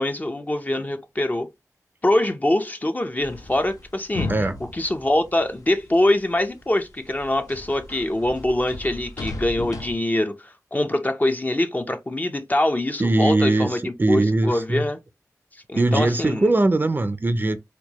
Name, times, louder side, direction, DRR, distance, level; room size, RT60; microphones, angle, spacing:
voice 1, 0.0-1.5 2.0-4.3 4.7-15.0 15.5-16.5, left 1 dB, 25° left, 0.6 m, -24 dB
sound 1, 3.2-6.2 6.6-9.9, left 3 dB, 70° left, 0.7 m, -35 dB
voice 2, 13.0-14.9 15.7-17.6, right 2 dB, 35° right, 0.4 m, -21 dB
4.4 x 2.2 x 2.8 m
cardioid pair, 55°, 6 cm